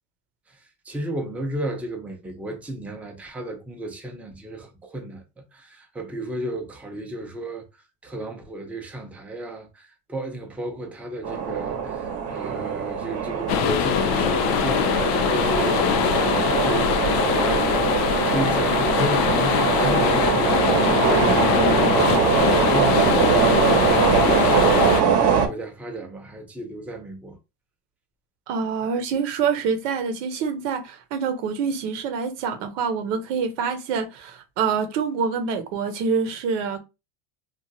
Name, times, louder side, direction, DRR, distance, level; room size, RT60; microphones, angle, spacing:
voice 1, 0.8-7.7 8.0-24.9 25.3-27.4, right 1 dB, 5° right, 0.5 m, -33 dB
sound 1, 11.2-25.5, right 7 dB, 40° right, 0.8 m, -22 dB
sound 2, 13.5-25.0, left 9 dB, 70° left, 0.5 m, -22 dB
voice 2, 28.5-36.8, right 6 dB, 90° right, 0.9 m, -26 dB
3.0 x 2.4 x 2.7 m
cardioid pair, 135°, 37 cm